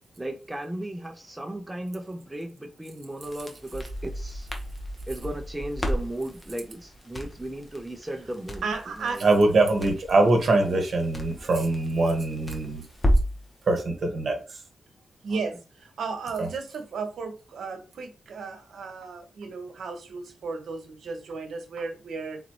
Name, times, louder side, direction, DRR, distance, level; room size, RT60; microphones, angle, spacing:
voice 1, 0.2-4.5 5.1-8.6 9.0-9.2 15.3-15.5, right 1 dB, 10° right, 0.5 m, -36 dB
Crackle, 3.2-13.5, equal, 15° left, 0.8 m, -32 dB
voice 2, 8.6-9.2 15.2-22.4, right 4 dB, 75° right, 0.9 m, -34 dB
voice 3, 9.2-12.8 13.7-14.4 16.4-16.5, right 2 dB, 50° right, 1.3 m, -22 dB
4.1 x 3.9 x 3.0 m
wide cardioid pair, 165°, 0 cm